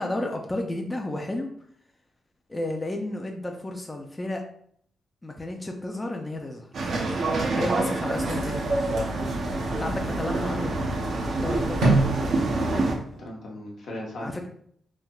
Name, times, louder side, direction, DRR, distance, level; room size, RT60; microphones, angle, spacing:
voice 1, 0.0-1.5 2.5-4.4 5.2-6.7 7.5-8.7 9.8-10.7 11.4-12.0 14.2-14.5, left 1 dB, 20° left, 2 dB, 0.4 m, -32 dB
sound 1, 6.7-13.0, right 2 dB, 65° right, 0.5 m, -27 dB
sound 2, 8.1-13.1, right 2 dB, 85° right, 1.2 m, -29 dB
voice 2, 12.7-14.5, left 1 dB, 75° left, -2 dB, 0.9 m, -38 dB
3.2 x 2.7 x 2.3 m, 0.65 s
cardioid pair, 80°, 0 cm